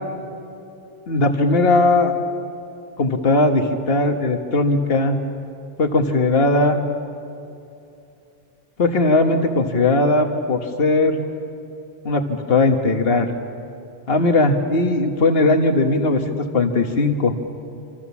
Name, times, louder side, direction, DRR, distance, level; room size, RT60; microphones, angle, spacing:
voice 1, 1.1-2.1 3.0-5.2 5.8-6.8 8.8-11.2 12.0-13.3 14.1-17.3, left 2 dB, 65° left, 5 dB, 1.7 m, -18 dB
27.0 x 26.5 x 7.2 m, 2.7 s
omnidirectional pair, 1.1 m